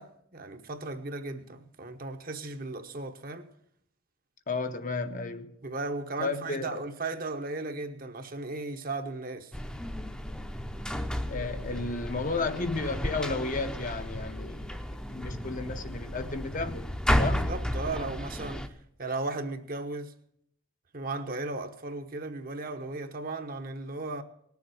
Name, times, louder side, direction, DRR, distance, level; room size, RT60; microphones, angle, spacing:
voice 1, 0.0-3.5 5.6-9.6 17.2-18.7 19.0-20.1 20.9-24.2, right 3 dB, 40° right, 0.9 m, -36 dB
voice 2, 4.5-5.6 6.2-6.8 11.2-14.7 15.1-16.9 17.2-17.5, left 3 dB, 40° left, 0.8 m, -33 dB
sound 1, 9.5-18.7, equal, 5° left, 0.7 m, -33 dB
19.0 x 7.1 x 7.8 m
head